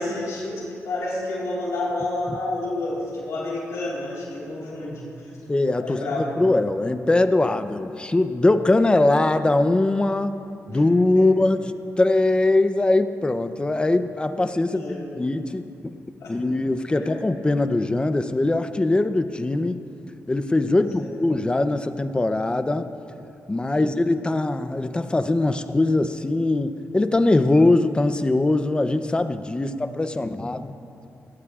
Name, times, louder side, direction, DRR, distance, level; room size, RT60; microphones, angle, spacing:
voice 1, 0.0-5.3 5.8-6.4 10.7-10.8 11.1-11.2 14.6-15.2 16.2-16.3 16.9-17.2 20.7-21.1 29.6-29.9, left 2 dB, 90° left, -6 dB, 3.7 m, -30 dB
voice 2, 5.5-6.0 6.4-10.3 10.7-11.6 12.0-15.6 16.3-19.8 20.3-22.9 23.5-30.7, left 2 dB, 20° left, 9 dB, 0.6 m, -21 dB
22.5 x 17.5 x 2.4 m, 2.6 s
cardioid pair, 90°, 5 cm